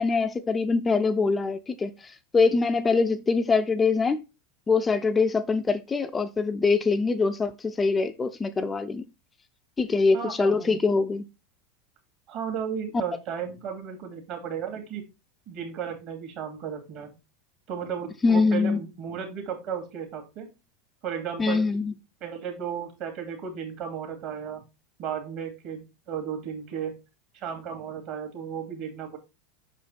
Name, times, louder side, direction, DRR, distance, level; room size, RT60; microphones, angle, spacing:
voice 1, 0.0-4.2 4.7-9.0 9.8-11.3 18.2-18.8 21.4-21.9, left 4 dB, 20° left, 0.5 m, -24 dB
voice 2, 10.1-10.8 12.3-15.0 15.5-17.1 17.7-20.5 21.0-21.7 22.2-24.6 25.0-27.0 27.3-29.2, right 7 dB, 45° right, 2.4 m, -34 dB
6.2 x 5.0 x 4.1 m
figure-of-eight pair, 85°, 0 cm